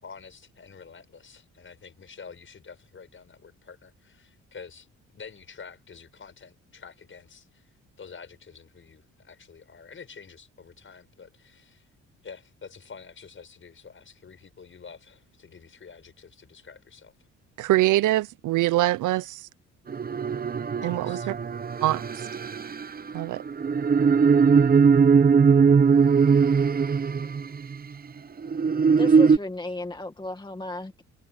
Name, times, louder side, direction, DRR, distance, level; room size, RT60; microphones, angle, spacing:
voice 1, 0.0-7.7 8.0-11.9 12.2-17.1 20.8-21.3, left 5 dB, 40° left, 6.6 m, -47 dB
voice 2, 17.6-19.5 20.8-21.2 21.8-22.0 23.1-23.4, right 16 dB, 85° right, 0.8 m, -23 dB
sound 1, 19.9-27.8 28.4-29.4, right 5 dB, 30° right, 0.9 m, -20 dB
voice 3, 28.9-31.0, left 2 dB, 15° left, 1.9 m, -34 dB
cardioid pair, 90°, 30 cm